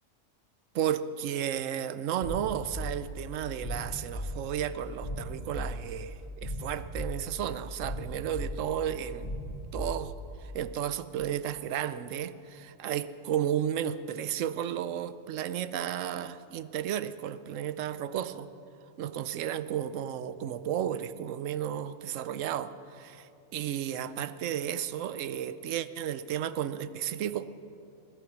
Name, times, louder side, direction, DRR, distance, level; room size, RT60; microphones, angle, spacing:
voice 1, 0.7-9.3 9.7-10.1 10.5-18.5 19.0-27.4, right 10 dB, 75° right, 14 dB, 1.0 m, -33 dB
sound 1, 2.2-10.5, equal, 35° left, 2.0 m, -38 dB
20.5 x 11.5 x 6.1 m, 2.7 s
omnidirectional pair, 1.3 m